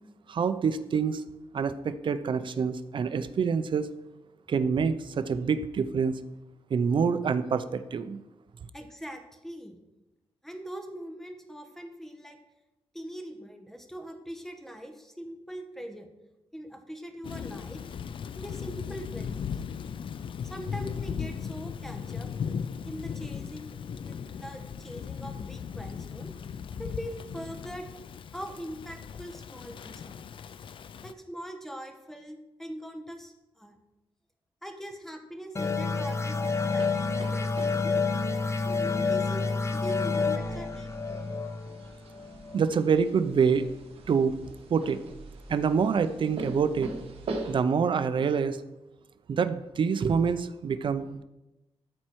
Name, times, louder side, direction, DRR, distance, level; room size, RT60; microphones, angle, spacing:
voice 1, 0.3-1.2 1.5-3.9 4.5-6.2 6.7-8.2 42.5-43.7 44.1-44.4 44.7-45.0 45.5-46.9 47.5-48.6 49.3-51.2, right 6 dB, 55° right, 12 dB, 0.6 m, -26 dB
voice 2, 8.7-9.8 10.4-12.4 12.9-16.1 16.5-17.8 18.4-19.6 20.4-22.3 22.9-26.3 26.8-27.9 28.3-30.2 31.0-33.8 34.6-37.9 38.6-41.2, equal, 5° left, 5 dB, 1.2 m, -42 dB
Thunder / Rain, 17.2-31.1, left 7 dB, 60° left, 0.4 m, -37 dB
sound 1, 35.6-42.8, left 4 dB, 30° left, 0.8 m, -29 dB
sound 2, 36.4-47.6, right 2 dB, 80° right, 1.3 m, -43 dB
13.0 x 4.4 x 4.6 m, 0.96 s
cardioid pair, 105°, 10 cm